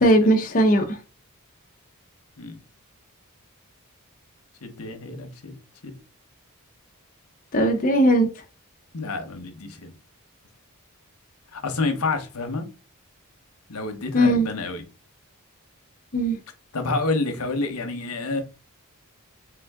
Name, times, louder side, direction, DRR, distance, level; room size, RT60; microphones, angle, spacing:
voice 1, 0.0-1.0 7.5-8.3 14.1-14.5 16.1-16.4, right 1 dB, 40° left, 0.6 m, -18 dB
voice 2, 4.6-5.6 5.8-5.9 8.9-9.9 11.5-12.7 13.7-14.8 16.7-18.4, left 3 dB, 75° left, 0.9 m, -28 dB
3.7 x 3.5 x 3.5 m
head